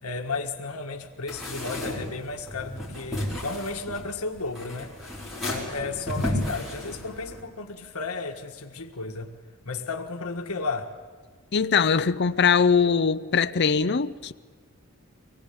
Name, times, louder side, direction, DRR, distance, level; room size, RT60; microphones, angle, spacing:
voice 1, 0.0-4.9 5.4-9.3 9.6-10.9, left 3 dB, 80° left, 1.7 m, -33 dB
sound 1, 1.3-7.4, left 1 dB, ahead, 5.2 m, -33 dB
voice 2, 11.5-14.3, left 6 dB, 50° left, 0.6 m, -21 dB
24.5 x 20.0 x 8.7 m
head